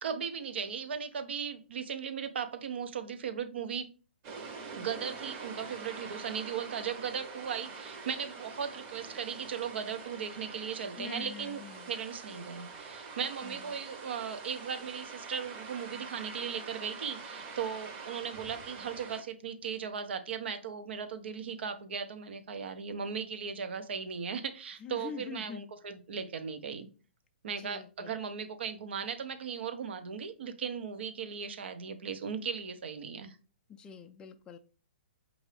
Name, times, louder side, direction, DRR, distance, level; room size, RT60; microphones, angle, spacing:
voice 1, 0.0-3.9 4.8-11.6 11.9-26.9 27.4-33.4, right 7 dB, 70° right, 9 dB, 0.7 m, -37 dB
sound 1, 4.2-19.2, right 4 dB, 35° right, 1.0 m, -45 dB
voice 2, 11.0-11.9 13.4-13.7 24.8-25.6 27.6-28.1 33.8-34.6, left 6 dB, 15° left, 4 dB, 0.3 m, -44 dB
5.7 x 2.6 x 3.2 m, 0.36 s
hypercardioid pair, 140°, 6 cm